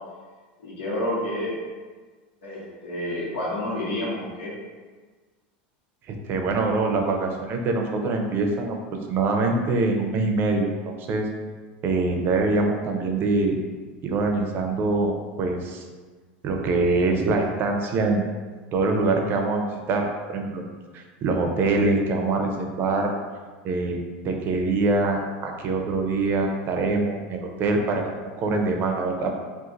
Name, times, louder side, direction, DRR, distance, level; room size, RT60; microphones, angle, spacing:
voice 1, 0.6-1.5 2.4-4.5, left 1 dB, 85° left, -6 dB, 1.2 m, -29 dB
voice 2, 6.1-8.8 9.1-11.3 11.8-13.6 14.0-15.9 16.4-18.2 18.7-20.6 20.9-23.1 23.6-29.3, right 3 dB, 40° right, 3 dB, 0.5 m, -24 dB
2.5 x 2.5 x 3.8 m, 1.4 s
supercardioid pair, 115°, 5 cm